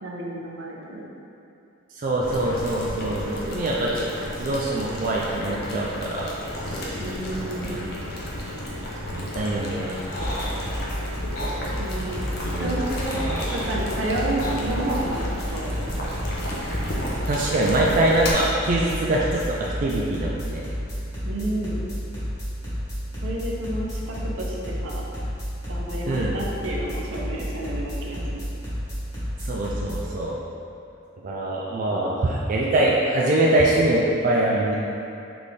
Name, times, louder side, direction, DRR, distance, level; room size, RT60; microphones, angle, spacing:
voice 1, 0.0-1.1 7.0-7.8 11.8-12.2 12.6-13.2 13.5-15.7 21.2-21.8 23.2-25.1 25.7-28.4 31.9-32.3, right 1 dB, 75° right, -3 dB, 0.7 m, -31 dB
voice 2, 2.0-4.1 4.4-6.3 6.7-6.9 7.7-7.8 9.1-10.0 12.4-12.7 13.3-13.4 17.3-20.6 26.1-26.4 29.4-30.4 31.2-34.8, right 1 dB, 40° right, -4 dB, 0.3 m, -23 dB
Boiling, 2.2-18.3, left 1 dB, 50° left, 0.7 m, -32 dB
sound 1, 9.9-10.5 11.4-11.5 12.7-13.7 14.4-14.6, equal, 85° left, 1.3 m, -34 dB
sound 2, 10.1-30.0, equal, 15° left, 1.2 m, -31 dB
4.0 x 3.4 x 3.2 m, 2.7 s
head